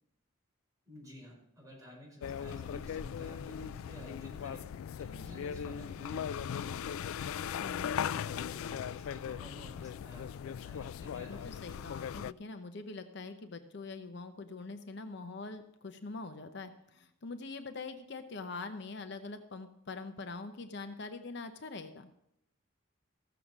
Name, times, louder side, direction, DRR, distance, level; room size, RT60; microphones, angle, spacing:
voice 1, 0.9-4.6 5.0-7.2 7.6-11.5, left 1 dB, 15° right, -4 dB, 5.0 m, -52 dB
sound 1, 2.2-12.3, left 8 dB, 85° left, 0.3 m, -38 dB
voice 2, 7.6-7.9 11.3-22.1, left 3 dB, 55° left, 8 dB, 0.7 m, -44 dB
14.5 x 6.9 x 6.0 m, 0.79 s
head